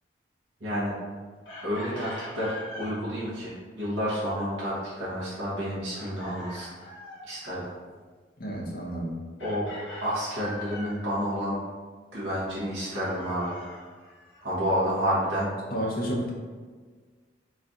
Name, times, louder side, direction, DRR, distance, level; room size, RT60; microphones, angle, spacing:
voice 1, 0.6-0.9 1.6-6.7 7.3-7.7 9.4-9.7 10.0-11.6 12.1-13.6 14.4-15.5, equal, 80° right, -9 dB, 1.0 m, -29 dB
Chicken rooster, 1.4-3.0 5.9-7.3 9.4-11.0 12.9-14.5, left 1 dB, 90° left, 1.0 m, -43 dB
voice 2, 8.4-9.2 15.7-16.3, equal, 55° left, -2 dB, 0.7 m, -30 dB
3.1 x 2.4 x 3.8 m, 1.5 s
head